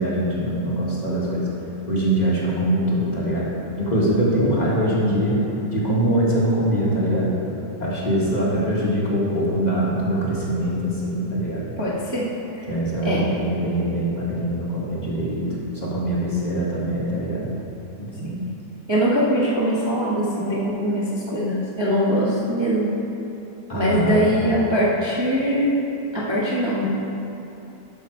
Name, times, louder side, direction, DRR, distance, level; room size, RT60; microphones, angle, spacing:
voice 1, 0.0-1.5 1.9-3.5 3.8-5.4 5.7-7.3 7.8-11.7 12.7-15.5 15.7-17.5 18.0-18.3 23.7-24.4, right 1 dB, 25° left, -7 dB, 1.6 m, -23 dB
voice 2, 11.8-12.3 12.6-12.7 13.0-13.3 18.2-18.5 18.9-22.9 23.7-25.7 26.1-26.9, equal, 20° right, -8 dB, 1.1 m, -22 dB
11.5 x 6.2 x 4.5 m, 2.9 s
omnidirectional pair, 1.8 m